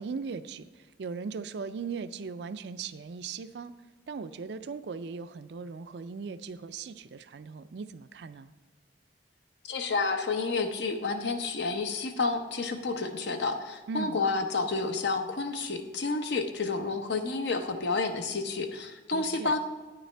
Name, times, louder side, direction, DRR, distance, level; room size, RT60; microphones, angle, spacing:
voice 1, 0.0-3.7 4.1-8.5 13.9-14.2 19.1-19.5, right 5 dB, 65° right, 12 dB, 0.4 m, -38 dB
voice 2, 9.7-19.6, left 3 dB, 70° left, 6 dB, 0.8 m, -30 dB
9.8 x 9.0 x 3.4 m, 1.3 s
head